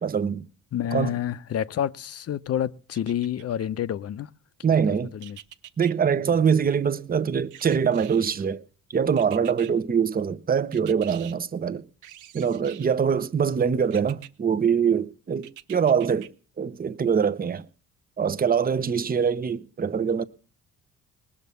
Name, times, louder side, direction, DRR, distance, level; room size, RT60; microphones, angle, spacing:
voice 1, 0.0-0.5 0.9-1.1 4.6-5.1 5.8-8.6 8.9-11.9 12.3-16.3 16.6-17.7 18.2-20.2, right 7 dB, 30° right, 0.8 m, -23 dB
voice 2, 0.7-4.3 4.7-5.4 6.3-6.4, left 10 dB, 55° left, 0.7 m, -29 dB
sound 1, 2.9-3.7 5.2-5.9 7.5-8.5 9.2-9.7 10.7-11.4 12.0-13.0 13.9-14.3 15.4-16.3 16.8-16.9, right 12 dB, 80° right, 0.8 m, -46 dB
19.5 x 7.3 x 6.8 m
cardioid pair, 90°, 30 cm